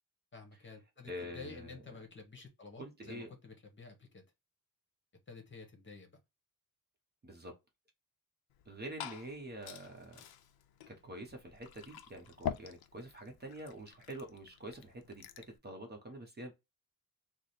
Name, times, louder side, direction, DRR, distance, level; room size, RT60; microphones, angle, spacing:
voice 1, 0.3-4.2 5.3-6.2, left 4 dB, 30° left, 0.9 m, -51 dB
voice 2, 1.1-1.8 2.8-3.3 7.2-7.5 8.7-10.2 10.9-15.3 15.6-16.5, right 1 dB, 25° right, 0.8 m, -46 dB
Liquid, 8.5-15.6, left 9 dB, 80° left, 0.6 m, -47 dB
3.3 x 2.0 x 4.1 m
wide cardioid pair, 170°, 37 cm